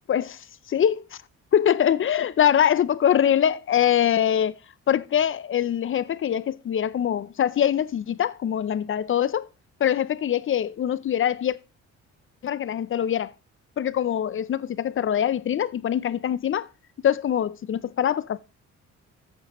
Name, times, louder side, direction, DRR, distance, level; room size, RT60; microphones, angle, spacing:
voice 1, 0.1-1.0 1.5-4.6 4.9-9.5 9.8-11.6 12.4-13.3 13.8-16.7 17.0-18.4, left 9 dB, 45° left, 0.5 m, -23 dB
13.5 x 8.7 x 3.0 m
cardioid pair, 90°, 30 cm